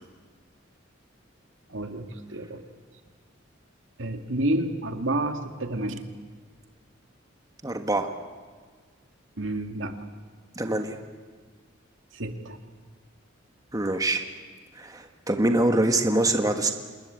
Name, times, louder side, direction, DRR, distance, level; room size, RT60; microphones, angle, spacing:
voice 1, 1.7-2.6 4.0-6.0 9.4-10.0 12.1-12.6, right 1 dB, 75° right, 6 dB, 2.1 m, -29 dB
voice 2, 7.6-8.1 10.5-11.0 13.7-14.2 14.7-16.7, right 2 dB, 20° right, 5 dB, 1.5 m, -24 dB
27.0 x 21.0 x 8.8 m, 1.5 s
head